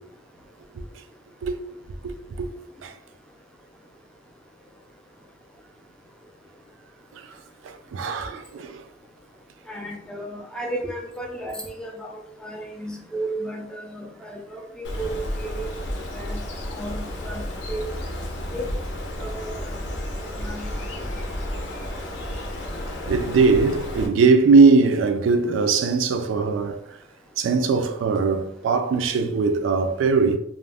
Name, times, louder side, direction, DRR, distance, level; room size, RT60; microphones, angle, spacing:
voice 1, 2.0-2.5 2.8-2.9 7.2-8.8 23.1-26.8 27.4-30.4, right 4 dB, 85° right, 0.3 m, -20 dB
voice 2, 9.7-12.1 12.4-15.1 15.4-15.7 16.1-16.4 16.7-17.9 18.5-18.6 19.2-19.8 20.2-20.7, right 1 dB, 5° left, 0.3 m, -34 dB
Bird, 14.8-24.1, left 1 dB, 70° left, 0.5 m, -32 dB
2.4 x 2.1 x 3.3 m
head